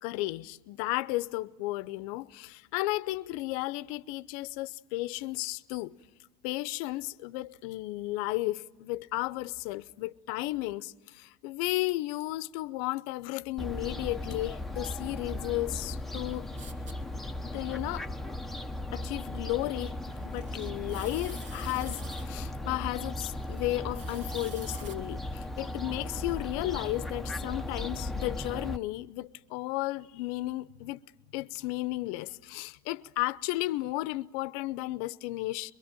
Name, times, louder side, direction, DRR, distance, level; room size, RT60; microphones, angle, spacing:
voice 1, 0.0-6.0 6.4-16.5 17.5-18.1 18.9-20.0 20.2-31.0 31.3-35.7, left 19 dB, 65° left, 0.7 m, -34 dB
Fowl, 13.6-28.8, left 1 dB, ahead, 0.8 m, -37 dB
sound 1, 16.6-16.9 20.0-22.3 23.2-25.0 25.6-26.4, right 3 dB, 40° right, 2.1 m, -50 dB
23.0 x 23.0 x 9.1 m
supercardioid pair, 110°, 19 cm